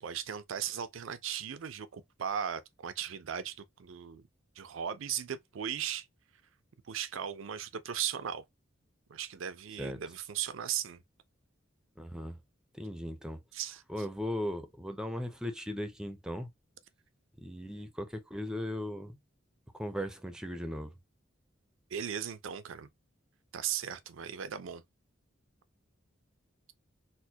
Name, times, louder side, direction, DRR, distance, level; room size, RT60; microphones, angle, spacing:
voice 1, 0.0-4.3 4.6-6.1 6.8-8.4 9.1-11.0 13.5-14.1 21.9-22.9 23.5-24.8, right 9 dB, 80° right, 0.5 m, -37 dB
voice 2, 12.0-12.4 12.7-13.4 13.9-16.5 17.4-19.2 19.7-21.0, equal, 5° right, 0.5 m, -37 dB
4.3 x 2.1 x 2.7 m
head